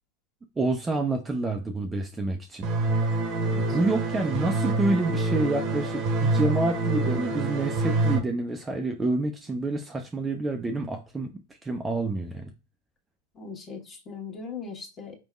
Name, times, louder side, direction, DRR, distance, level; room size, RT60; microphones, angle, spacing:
voice 1, 0.6-2.7 3.5-11.3 11.6-12.5, right 2 dB, 10° right, 0.5 m, -28 dB
sound 1, 2.6-8.2, right 2 dB, 35° right, 0.9 m, -26 dB
voice 2, 3.4-3.8 13.3-15.1, left 5 dB, 25° left, 1.3 m, -39 dB
4.9 x 3.4 x 2.2 m
figure-of-eight pair, 90°, 0 cm